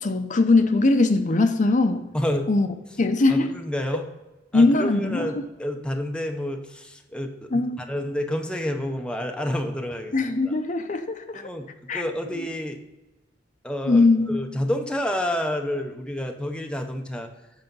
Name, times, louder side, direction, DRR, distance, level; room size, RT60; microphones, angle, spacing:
voice 1, 0.0-2.0 2.5-2.7 3.0-3.5 4.5-5.3 7.5-7.8 10.1-11.4 11.9-12.0 13.9-14.3, left 3 dB, 45° left, 7 dB, 0.6 m, -20 dB
voice 2, 2.1-2.5 3.3-4.0 4.5-10.1 10.4-10.5 11.3-12.8 13.6-17.3, left 1 dB, 5° left, 4 dB, 0.6 m, -29 dB
7.9 x 5.1 x 5.3 m, 1.1 s
head